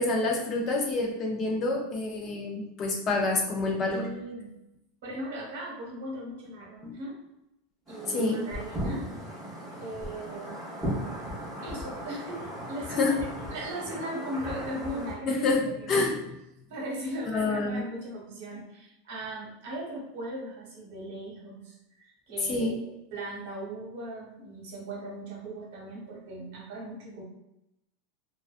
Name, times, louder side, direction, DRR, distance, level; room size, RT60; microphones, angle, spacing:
voice 1, 0.0-4.1 6.8-6.9 8.1-8.5 12.9-13.2 15.3-15.6 15.9-16.2 17.3-17.8 22.5-22.8, left 3 dB, 20° left, 0 dB, 0.4 m, -27 dB
voice 2, 3.9-4.5 5.0-7.2 7.9-9.1 9.8-10.6 11.6-15.4 15.8-16.1 16.7-27.2, right 1 dB, 60° right, -3 dB, 1.0 m, -38 dB
fireworks in badgastein, 7.9-15.1, equal, ahead, 0.8 m, -37 dB
2.5 x 2.2 x 2.4 m, 0.87 s
supercardioid pair, 180°, 0 cm